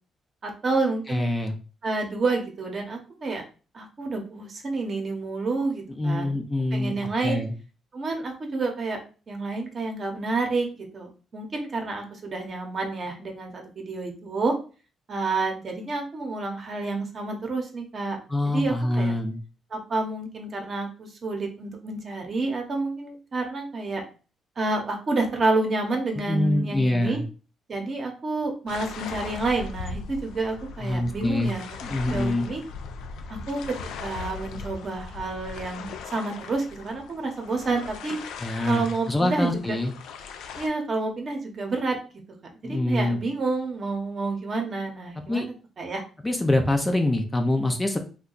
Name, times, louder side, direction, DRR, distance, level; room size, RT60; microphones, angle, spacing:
voice 1, 0.4-1.3 1.8-3.4 3.7-6.3 6.7-7.4 7.9-9.0 9.3-11.1 11.3-14.5 15.1-18.2 18.5-19.1 19.7-24.0 24.6-27.2 27.7-31.6 32.1-32.6 33.3-33.6 34.0-38.2 38.7-39.8 40.6-42.0 42.7-46.0, right 3 dB, 45° right, 3 dB, 0.8 m, -29 dB
voice 2, 1.1-1.6 6.0-6.9 7.2-7.5 18.3-19.4 26.3-27.2 30.8-31.5 31.8-32.5 38.4-39.9 42.6-43.2 45.3-45.5 46.2-48.0, left 1 dB, 15° left, 4 dB, 0.5 m, -25 dB
sound 1, 28.7-40.7, left 5 dB, 85° left, 0.4 m, -39 dB
2.7 x 2.3 x 3.9 m, 0.36 s
cardioid pair, 90°, 0 cm